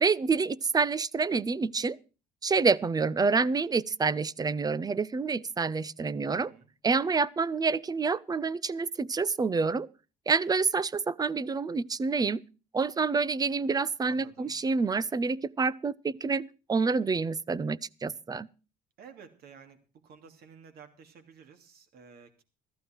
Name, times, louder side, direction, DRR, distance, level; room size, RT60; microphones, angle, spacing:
voice 1, 0.0-2.0 2.4-6.5 6.8-9.9 10.3-12.4 12.7-18.5, right 4 dB, 20° right, 0.6 m, -28 dB
voice 2, 6.3-6.7 14.1-14.6 19.0-19.8 20.0-22.4, right 6 dB, 65° right, 3.0 m, -52 dB
15.0 x 14.0 x 4.6 m
cardioid pair, 110°, 17 cm